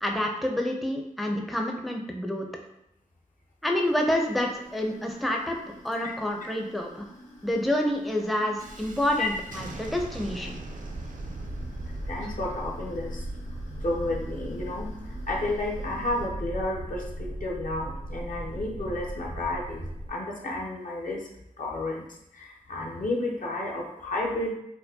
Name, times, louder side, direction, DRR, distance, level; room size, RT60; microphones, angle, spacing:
voice 1, 0.0-2.5 3.6-5.6 5.8-7.0 7.4-10.5, left 1 dB, ahead, 2 dB, 0.4 m, -28 dB
sound 1, 3.8-16.3, equal, 55° left, 1.0 m, -50 dB
Thunderstorm, 8.6-20.1, right 1 dB, 70° right, 0.4 m, -37 dB
voice 2, 12.1-13.2 13.8-14.9 15.3-21.3 21.6-22.0 22.3-24.5, left 2 dB, 70° left, -2 dB, 0.7 m, -31 dB
4.4 x 2.0 x 2.7 m, 0.80 s
wide cardioid pair, 65°, 14 cm